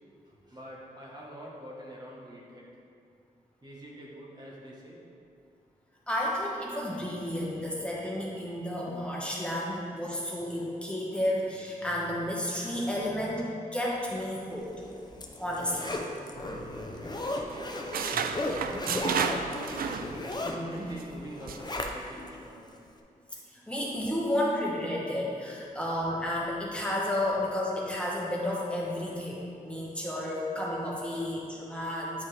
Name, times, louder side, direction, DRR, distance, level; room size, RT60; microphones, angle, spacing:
voice 1, 0.3-2.7 3.6-5.0 15.6-16.6 17.0-18.0 18.5-22.7 29.9-30.0 31.1-31.3, equal, 30° right, -5 dB, 1.3 m, -46 dB
voice 2, 6.1-14.7 15.4-15.9 18.7-19.1 20.4-20.9 23.5-32.2, left 1 dB, 5° left, -6 dB, 1.4 m, -32 dB
Zipper (clothing), 14.7-22.3 22.7-22.8, left 1 dB, 30° left, 0.7 m, -36 dB
sound 1, 16.4-17.2 17.5-20.5 20.8-21.0 21.5-21.7, right 7 dB, 80° right, 0.4 m, -33 dB
9.1 x 5.4 x 3.3 m, 2.5 s
cardioid pair, 80°, 15 cm